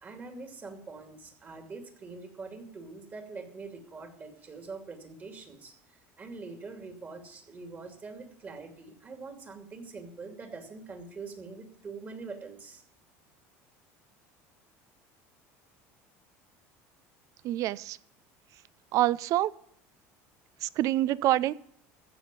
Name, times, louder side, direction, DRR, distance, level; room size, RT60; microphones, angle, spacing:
voice 1, 0.0-5.7 6.2-12.8, right 4 dB, 25° right, 6 dB, 2.7 m, -44 dB
voice 2, 17.4-18.0 18.9-19.5 20.6-21.5, right 14 dB, 55° right, 21 dB, 0.5 m, -26 dB
15.0 x 6.3 x 9.1 m, 0.67 s
cardioid pair, 130°, 7 cm